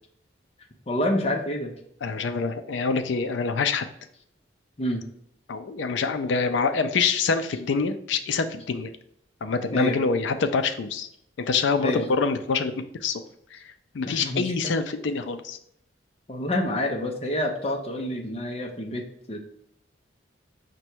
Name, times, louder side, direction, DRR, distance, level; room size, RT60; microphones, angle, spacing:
voice 1, 0.9-1.7 4.8-5.0 9.7-10.0 11.8-12.1 14.0-14.7 16.3-19.4, left 1 dB, 30° left, 2 dB, 0.6 m, -28 dB
voice 2, 2.0-3.9 5.5-8.9 9.4-11.1 11.4-12.7 13.0-13.2 13.5-13.6 13.9-15.6, left 4 dB, 75° left, 9 dB, 0.4 m, -25 dB
5.1 x 2.2 x 4.4 m, 0.72 s
head